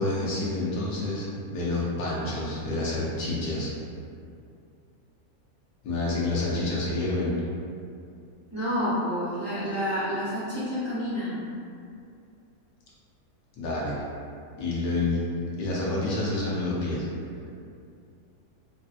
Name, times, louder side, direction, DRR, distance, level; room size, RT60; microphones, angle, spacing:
voice 1, 0.0-3.7 5.8-7.3 13.6-14.0 14.6-15.3 15.6-17.0, left 2 dB, 65° left, -6 dB, 1.1 m, -28 dB
voice 2, 8.5-11.4, equal, 30° left, -12 dB, 0.9 m, -29 dB
3.2 x 2.5 x 2.4 m, 2.5 s
omnidirectional pair, 1.7 m